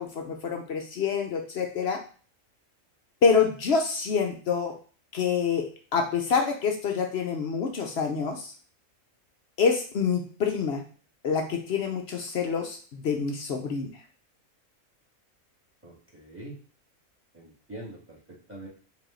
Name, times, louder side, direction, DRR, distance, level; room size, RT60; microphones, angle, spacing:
voice 1, 0.0-2.0 3.2-4.7 5.1-5.7 5.9-8.5 9.6-10.8 11.2-13.9, left 5 dB, 60° left, 3 dB, 0.8 m, -26 dB
voice 2, 15.8-16.6 17.3-18.7, right 1 dB, 10° right, -5 dB, 1.6 m, -44 dB
4.9 x 2.7 x 3.7 m, 0.40 s
omnidirectional pair, 1.5 m